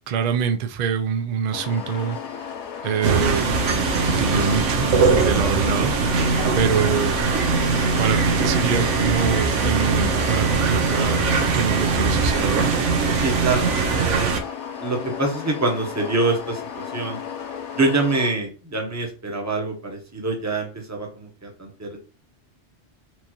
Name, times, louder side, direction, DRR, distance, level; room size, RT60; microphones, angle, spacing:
voice 1, 0.1-2.2 2.8-3.5 4.2-4.9 5.2-5.9 6.5-7.2 8.0-12.7, right 6 dB, 60° right, 0.4 m, -25 dB
sound 1, 1.5-18.3, left 7 dB, 75° left, 1.0 m, -34 dB
sound 2, 3.0-14.4, right 4 dB, 85° right, 1.0 m, -21 dB
voice 2, 13.1-14.4 14.8-17.2 17.8-22.0, right 3 dB, 15° right, 0.9 m, -25 dB
4.5 x 2.6 x 2.9 m
omnidirectional pair, 1.2 m